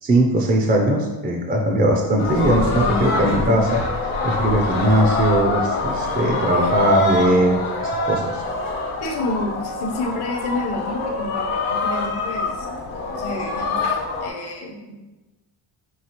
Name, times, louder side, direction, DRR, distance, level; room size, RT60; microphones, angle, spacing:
voice 1, 0.0-8.4, right 1 dB, 25° right, 1 dB, 0.3 m, -20 dB
sound 1, 2.2-14.3, left 3 dB, 75° left, 1.1 m, -24 dB
voice 2, 6.5-6.8 9.0-15.0, left 2 dB, 50° left, 0 dB, 0.8 m, -30 dB
5.6 x 2.7 x 2.9 m, 1.1 s
cardioid pair, 140°, 49 cm